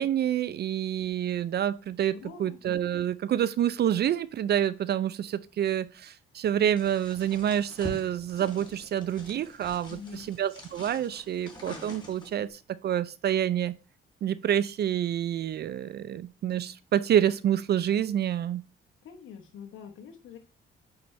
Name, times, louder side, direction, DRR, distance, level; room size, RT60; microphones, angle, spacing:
voice 1, 0.0-13.7 14.2-18.6, right 10 dB, 55° right, 0.5 m, -28 dB
voice 2, 2.1-2.6 9.9-10.3 19.0-20.4, left 6 dB, 80° left, 1.1 m, -45 dB
sound 1, 6.8-12.5, left 1 dB, 20° left, 3.7 m, -45 dB
9.4 x 4.4 x 3.2 m
cardioid pair, 90°, 20 cm